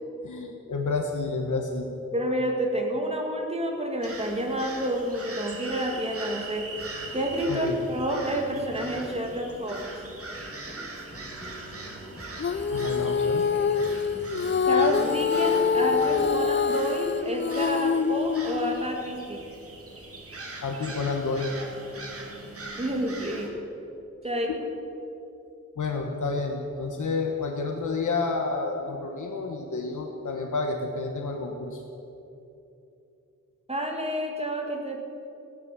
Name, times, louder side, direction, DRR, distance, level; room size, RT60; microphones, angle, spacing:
voice 1, 0.2-1.9 7.5-7.8 12.7-13.5 20.6-21.5 25.8-31.8, left 3 dB, 80° left, 2 dB, 1.3 m, -30 dB
voice 2, 2.1-6.7 7.1-9.9 14.7-19.4 22.8-23.5 24.2-24.5 33.7-35.0, right 1 dB, 20° right, 1 dB, 1.9 m, -29 dB
sound 1, 4.0-23.5, right 1 dB, 50° right, 2.4 m, -40 dB
sound 2, 6.8-16.4, equal, 10° left, 2.1 m, -46 dB
Female singing, 12.4-18.9, left 6 dB, 40° left, 0.5 m, -25 dB
16.5 x 10.5 x 7.5 m, 2.9 s
wide cardioid pair, 140°, 30 cm